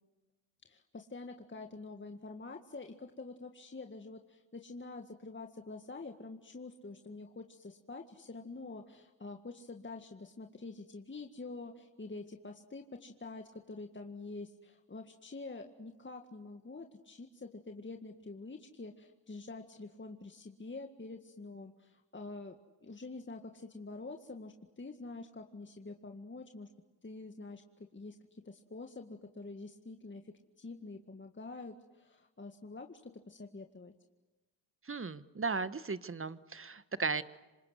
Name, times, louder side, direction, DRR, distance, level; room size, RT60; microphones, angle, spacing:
voice 1, 0.7-26.7 27.0-33.9, left 3 dB, 25° left, 4 dB, 1.9 m, -47 dB
voice 2, 34.8-37.2, right 4 dB, 30° right, 14 dB, 1.3 m, -36 dB
27.0 x 26.5 x 8.1 m, 1.1 s
hypercardioid pair, 40°, 46 cm